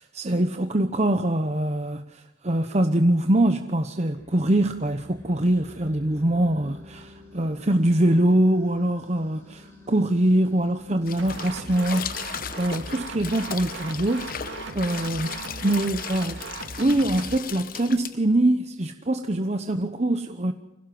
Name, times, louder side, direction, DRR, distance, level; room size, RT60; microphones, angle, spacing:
voice 1, 0.0-15.3 15.6-16.4 16.8-20.5, right 1 dB, 35° right, 7 dB, 1.0 m, -23 dB
sound 1, 4.1-15.7, left 1 dB, 15° left, 6.2 m, -49 dB
sound 2, 11.1-18.1, left 8 dB, 50° left, 1.1 m, -36 dB
sound 3, 11.2-17.4, right 3 dB, 75° right, 2.4 m, -38 dB
25.5 x 17.0 x 7.7 m, 0.98 s
head